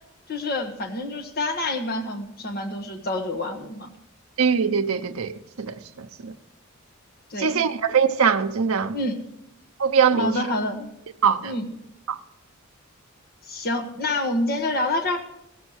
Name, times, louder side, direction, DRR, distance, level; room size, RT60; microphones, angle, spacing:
voice 1, 0.3-3.9 7.3-7.6 8.9-9.2 10.1-10.9 11.4-11.7 13.5-15.2, left 1 dB, 45° left, 1.2 m, -27 dB
voice 2, 4.4-6.3 7.4-9.0 9.8-10.3 11.2-11.5 12.1-12.2, right 6 dB, 90° right, 0.7 m, -22 dB
16.0 x 7.0 x 6.3 m
head